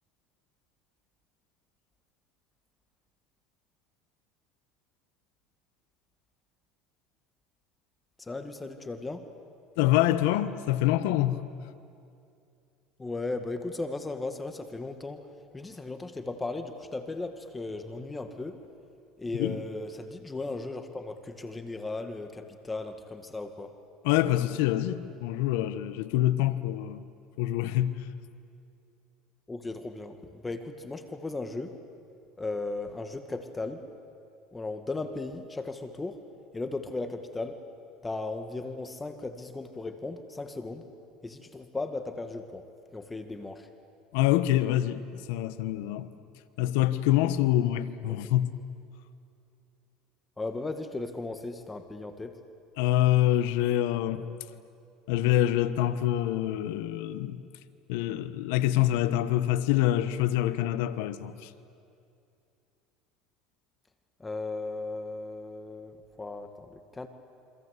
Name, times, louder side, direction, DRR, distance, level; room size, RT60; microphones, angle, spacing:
voice 1, 8.3-9.3 13.0-15.2 15.5-18.6 19.2-23.7 29.5-30.2 30.4-31.8 32.4-33.8 34.5-36.2 36.5-37.6 38.0-40.9 41.2-42.6 42.9-43.7 50.4-52.3 64.2-67.1, left 3 dB, 15° left, 2.0 m, -36 dB
voice 2, 9.8-11.4 19.3-19.6 24.0-27.0 27.4-28.0 44.1-46.1 46.6-48.6 52.8-54.3 55.1-57.4 57.9-61.5, left 13 dB, 80° left, 1.3 m, -26 dB
28.0 x 25.5 x 8.3 m
supercardioid pair, 105°, 0 cm